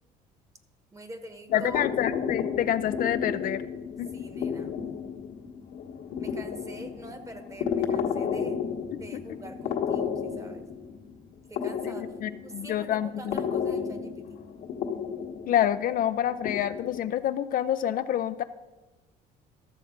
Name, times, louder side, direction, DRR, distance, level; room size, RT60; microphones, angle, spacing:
voice 1, 0.9-1.8 4.1-4.7 6.2-8.6 8.9-10.6 11.5-12.2 12.4-14.4, right 2 dB, 20° right, 8 dB, 1.2 m, -44 dB
sound 1, 1.5-17.0, left 7 dB, 70° left, 1.4 m, -33 dB
voice 2, 1.5-3.6 4.0-4.1 12.2-13.1 15.5-18.4, left 10 dB, 55° left, 11 dB, 0.5 m, -27 dB
13.0 x 6.7 x 5.0 m, 1.1 s
cardioid pair, 110°, 17 cm